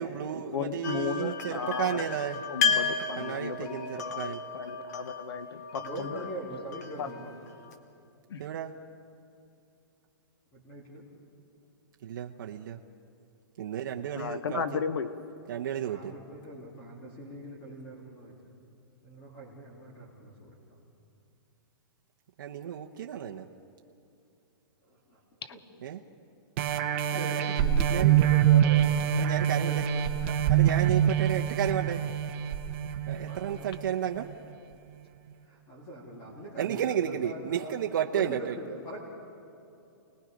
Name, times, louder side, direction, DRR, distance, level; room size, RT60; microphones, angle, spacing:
voice 1, 0.0-2.4 2.7-4.4 8.4-8.7 12.0-12.8 13.6-14.8 15.5-16.1 22.4-23.5 25.8-26.0 27.1-27.5 27.9-28.3 29.2-29.9 30.5-32.0 33.1-34.3 36.6-38.5, right 9 dB, 50° right, 0.9 m, -33 dB
voice 2, 0.5-2.1 2.5-6.3 7.0-7.1 8.3-8.4 14.1-15.1 25.4-25.5, left 6 dB, 75° left, 1.1 m, -35 dB
sound 1, 0.8-7.7, left 5 dB, 40° left, 1.8 m, -33 dB
voice 3, 5.8-7.3 10.5-11.0 15.9-18.3 19.0-20.5 25.5-25.6 26.9-28.9 29.5-30.4 33.3-33.7 35.5-37.7 38.1-39.0, right 1 dB, 20° left, 2.4 m, -42 dB
sound 2, 26.6-33.8 34.3-34.4, right 10 dB, 30° right, 1.0 m, -25 dB
29.0 x 20.0 x 5.2 m
hypercardioid pair, 175°, 13 cm